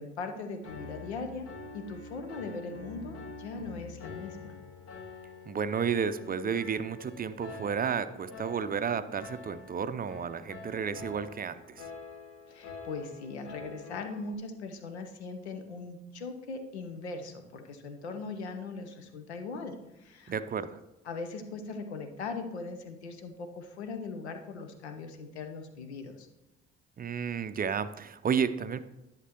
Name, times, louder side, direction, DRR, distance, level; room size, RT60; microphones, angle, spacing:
voice 1, 0.0-1.5 1.7-4.6 12.5-20.3 21.0-26.3, left 4 dB, 90° left, 7 dB, 0.7 m, -40 dB
Piano, 0.6-14.3, left 4 dB, 45° left, 1.2 m, -47 dB
voice 2, 5.5-11.8 20.3-20.8 27.0-28.8, right 6 dB, 30° right, 12 dB, 0.5 m, -32 dB
11.0 x 6.6 x 2.9 m, 0.95 s
hypercardioid pair, 50°, 32 cm